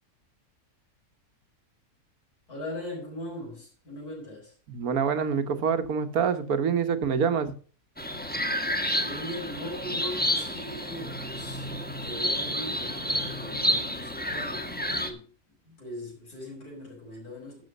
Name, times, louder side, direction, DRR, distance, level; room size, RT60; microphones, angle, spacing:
voice 1, 2.5-4.5 9.0-11.7 12.0-17.6, left 1 dB, 80° left, 6.4 m, -40 dB
voice 2, 4.7-7.5, right 6 dB, 75° right, 1.5 m, -26 dB
sound 1, 8.0-15.1, equal, 5° left, 1.3 m, -30 dB
11.5 x 6.9 x 5.2 m
omnidirectional pair, 1.6 m